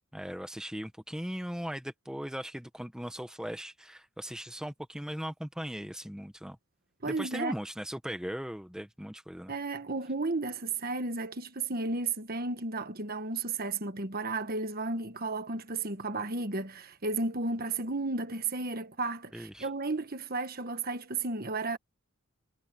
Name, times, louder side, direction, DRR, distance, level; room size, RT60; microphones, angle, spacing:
voice 1, 0.1-6.6 7.1-9.5 19.3-19.7, equal, 5° right, 1.1 m, -38 dB
voice 2, 7.0-7.5 9.5-21.8, right 3 dB, 45° right, 1.4 m, -33 dB
head